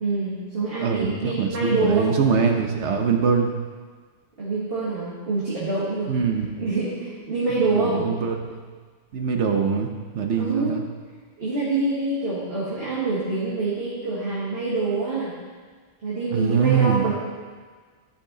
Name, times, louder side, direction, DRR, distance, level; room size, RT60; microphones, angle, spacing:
voice 1, 0.0-2.1 4.4-6.1 6.6-8.1 10.4-10.8 11.4-15.3 16.0-17.1, right 3 dB, 55° right, -8 dB, 1.9 m, -25 dB
voice 2, 0.8-3.5 6.1-6.5 7.7-8.6 9.1-10.8 16.3-17.1, right 6 dB, 75° right, 4 dB, 1.2 m, -23 dB
11.5 x 5.9 x 3.9 m, 1.5 s
omnidirectional pair, 1.2 m